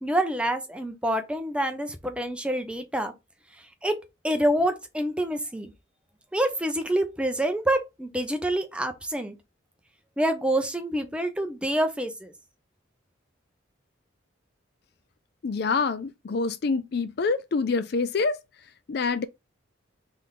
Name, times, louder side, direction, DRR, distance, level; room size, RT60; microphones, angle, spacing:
voice 1, 0.0-3.1 3.8-3.9 4.2-5.7 6.3-9.4 10.2-12.3, right 1 dB, 5° right, 0.6 m, -27 dB
voice 2, 15.4-18.4 18.9-19.2, left 4 dB, 55° left, 0.4 m, -26 dB
3.9 x 3.4 x 3.7 m
head